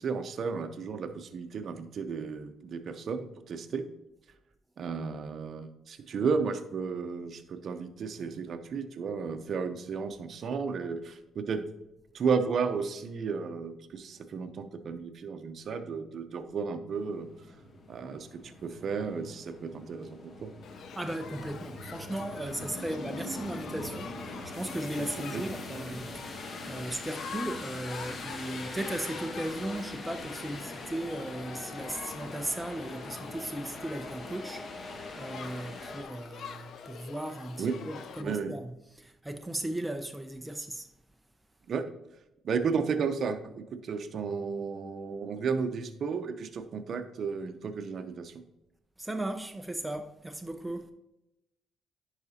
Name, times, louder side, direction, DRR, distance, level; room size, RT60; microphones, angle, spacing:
voice 1, 0.0-3.9 4.8-11.7 12.1-17.3 17.9-20.5 25.0-25.4 37.6-37.9 38.2-38.5 41.7-41.8 42.4-48.4, right 5 dB, 55° right, 0.7 m, -33 dB
sound 1, 16.9-36.0, left 2 dB, 45° left, 1.1 m, -42 dB
Shout / Human group actions, 20.6-38.2, left 7 dB, 70° left, 0.5 m, -46 dB
voice 2, 20.9-40.9 49.0-50.9, right 1 dB, 10° right, 0.5 m, -37 dB
10.5 x 4.9 x 2.8 m
cardioid pair, 90°, 0 cm